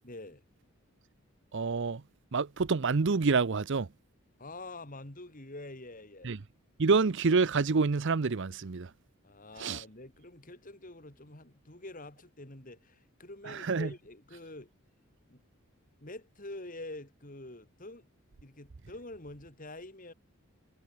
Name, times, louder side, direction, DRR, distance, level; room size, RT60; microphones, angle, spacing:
voice 1, 0.0-0.4 4.4-6.4 9.2-14.7 15.3-15.4 16.0-18.1 18.4-20.1, left 2 dB, 40° left, 2.8 m, -46 dB
voice 2, 1.5-2.0 2.3-3.9 6.2-6.4 6.8-8.9 9.6-9.8 13.4-13.9, right 4 dB, 55° right, 0.6 m, -27 dB
head